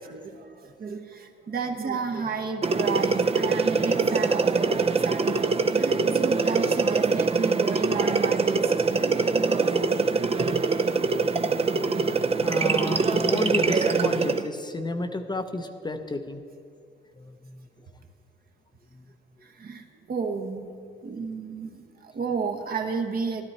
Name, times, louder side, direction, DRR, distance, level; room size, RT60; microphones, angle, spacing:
voice 1, 0.0-8.9 19.4-20.7 21.0-23.4, right 5 dB, 50° right, 5 dB, 1.2 m, -32 dB
sound 1, 2.6-14.5, right 4 dB, 30° right, 0.6 m, -23 dB
voice 2, 12.4-16.4 17.2-17.7 18.9-19.0, left 2 dB, 20° left, 7 dB, 0.7 m, -32 dB
13.0 x 12.0 x 4.3 m, 2.4 s
cardioid pair, 90°, 20 cm